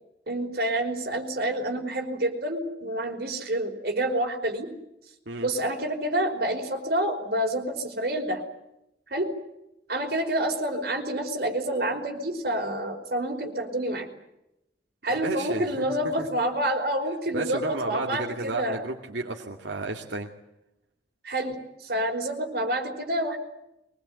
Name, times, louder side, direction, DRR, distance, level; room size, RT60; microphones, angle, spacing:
voice 1, 0.3-4.7 5.4-8.4 9.1-9.3 9.9-14.1 15.0-18.8 21.2-21.6 21.8-23.4, right 1 dB, 60° right, 2 dB, 5.2 m, -28 dB
voice 2, 15.2-15.8 17.3-20.3, right 2 dB, 85° right, 0 dB, 2.5 m, -32 dB
24.0 x 21.0 x 9.4 m, 0.86 s
head